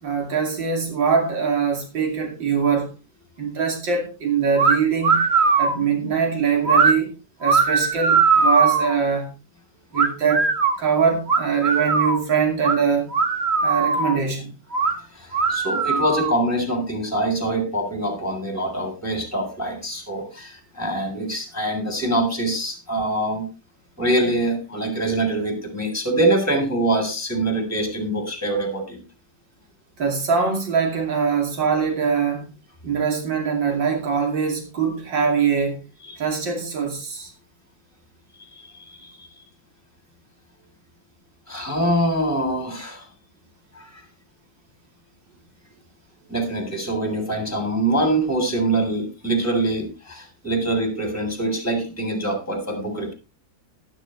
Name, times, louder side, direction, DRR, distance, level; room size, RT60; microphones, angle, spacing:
voice 1, 0.0-2.9 3.4-5.2 5.6-7.1 7.4-9.3 9.9-10.5 10.8-13.1 13.6-14.5 30.0-32.5 32.8-35.8 36.2-37.3, right 6 dB, 85° right, 3.3 m, -22 dB
sound 1, 4.6-4.8 5.0-5.8 6.6-6.9 7.4-9.0 9.9-10.8 11.3-12.2 12.6-12.8 13.1-14.2 14.7-14.9 15.3-16.4, right 4 dB, 40° right, 1.5 m, -19 dB
voice 2, 15.1-23.5 24.0-29.0 36.1-36.2 38.5-39.3 41.5-43.1 43.7-44.0 46.3-53.1, right 1 dB, 10° left, 3.6 m, -24 dB
13.0 x 12.0 x 3.2 m
omnidirectional pair, 2.0 m